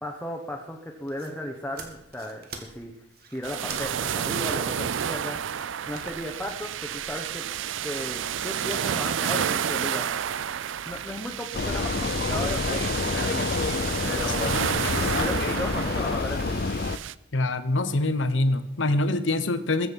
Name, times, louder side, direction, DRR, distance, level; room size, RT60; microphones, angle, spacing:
voice 1, 0.0-2.9 3.3-5.4 5.9-7.4 7.8-10.1 10.8-13.5 14.0-14.5 15.0-16.6, left 1 dB, 10° left, 0 dB, 1.2 m, -35 dB
sound 1, 1.1-7.5, right 4 dB, 50° right, 1.9 m, -46 dB
sound 2, 3.4-17.1, right 9 dB, 75° right, 0.5 m, -30 dB
Vehicle, 11.5-17.0, left 3 dB, 50° left, 0.6 m, -27 dB
voice 2, 17.3-19.9, left 2 dB, 75° left, 11 dB, 1.1 m, -24 dB
21.0 x 7.9 x 5.4 m, 0.86 s
head